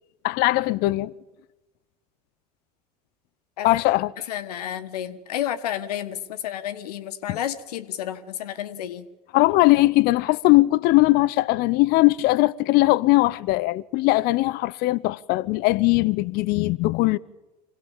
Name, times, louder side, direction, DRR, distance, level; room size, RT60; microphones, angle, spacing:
voice 1, 0.2-1.1 3.6-4.1 7.3-7.4 9.3-17.2, left 20 dB, 50° left, 0.7 m, -20 dB
voice 2, 4.3-9.1, left 11 dB, 70° left, 1.5 m, -31 dB
26.5 x 18.5 x 7.3 m
figure-of-eight pair, 75°, 21 cm